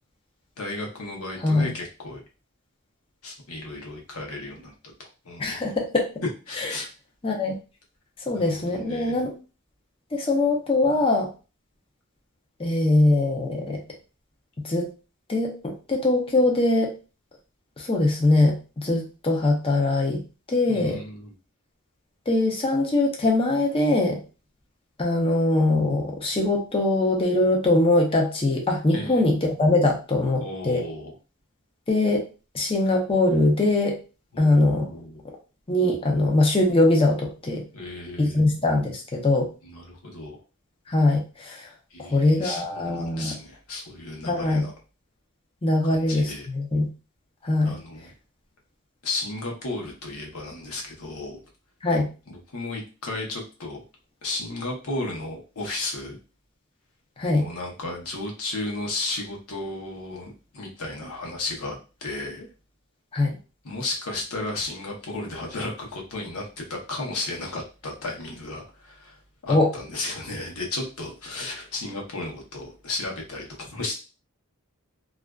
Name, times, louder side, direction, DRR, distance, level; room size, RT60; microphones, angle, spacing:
voice 1, 0.6-2.2 3.2-4.7 5.2-5.8 6.5-6.9 8.3-9.2 20.7-21.3 28.9-29.3 30.4-31.2 34.3-35.2 37.7-38.4 39.6-40.4 41.9-44.7 45.8-46.5 47.6-48.1 49.0-51.4 52.3-53.8 54.2-56.2 57.3-62.5 63.6-73.9, left 2 dB, 80° left, 0 dB, 0.8 m, -34 dB
voice 2, 5.4-6.0 6.6-6.7 7.2-7.5 8.3-9.3 10.1-11.3 12.6-13.8 14.6-14.9 15.3-16.9 17.8-20.2 20.5-21.0 22.3-24.2 25.0-30.8 31.9-32.2 32.5-34.0 34.4-34.9 35.7-37.6 38.2-39.5 40.9-41.7 42.0-43.3 44.2-44.6 45.6-46.9 47.4-47.8 51.8-52.1 57.2-57.4 63.1-63.4 69.5-69.7, left 2 dB, 25° left, 0 dB, 0.5 m, -22 dB
2.4 x 2.3 x 2.2 m, 0.33 s
head